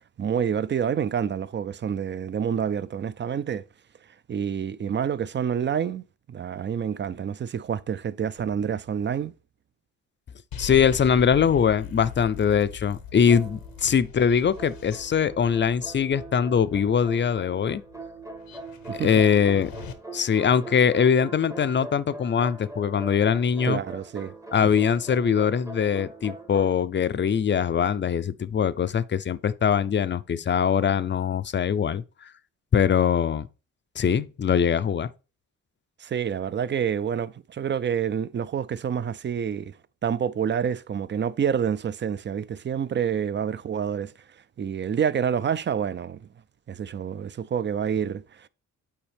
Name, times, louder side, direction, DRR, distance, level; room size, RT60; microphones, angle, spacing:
voice 1, 0.2-3.6 4.3-9.3 18.9-19.1 23.6-24.3 36.0-39.7 40.0-44.1 44.6-46.2 46.7-48.5, right 8 dB, 35° right, 0.4 m, -28 dB
sound 1, 10.5-19.9, left 7 dB, 80° left, 0.9 m, -41 dB
voice 2, 10.6-17.8 19.0-19.7 20.1-23.8 24.5-32.0 32.7-33.5 34.0-35.1, left 7 dB, 35° left, 0.5 m, -22 dB
sound 2, 13.3-14.1 14.6-26.7, right 2 dB, 10° right, 0.8 m, -42 dB
8.7 x 4.3 x 3.4 m
cardioid pair, 75°, 34 cm